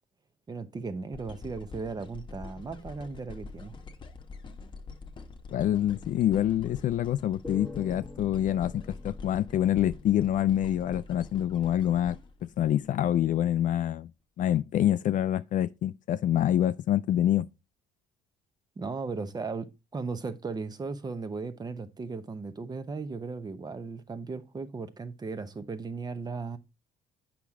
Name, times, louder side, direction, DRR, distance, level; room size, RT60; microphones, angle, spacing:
voice 1, 0.5-3.8 18.8-26.6, right 4 dB, 25° right, 0.8 m, -36 dB
sound 1, 1.1-13.3 13.9-14.0, left 4 dB, 30° left, 1.1 m, -45 dB
voice 2, 5.5-12.2 12.6-14.1 14.4-17.5, left 11 dB, 50° left, 0.4 m, -26 dB
sound 2, 7.4-10.8, left 2 dB, ahead, 1.4 m, -47 dB
8.3 x 5.9 x 3.6 m
cardioid pair, 115°, 17 cm